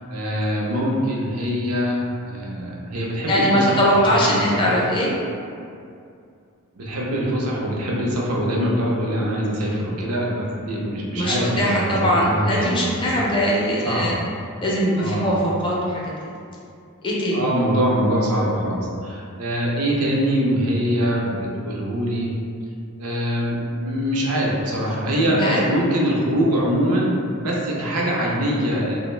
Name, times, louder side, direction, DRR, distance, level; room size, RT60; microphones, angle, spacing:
voice 1, 0.0-4.6 6.8-13.2 13.8-14.1 15.0-15.3 17.3-22.4 23.0-27.1 27.4-29.0, equal, 85° right, -3 dB, 0.5 m, -23 dB
voice 2, 3.3-5.1 11.1-14.2 14.6-16.0 17.0-17.4 25.4-25.6, equal, 25° left, -5 dB, 0.4 m, -21 dB
2.5 x 2.0 x 3.1 m, 2.4 s
head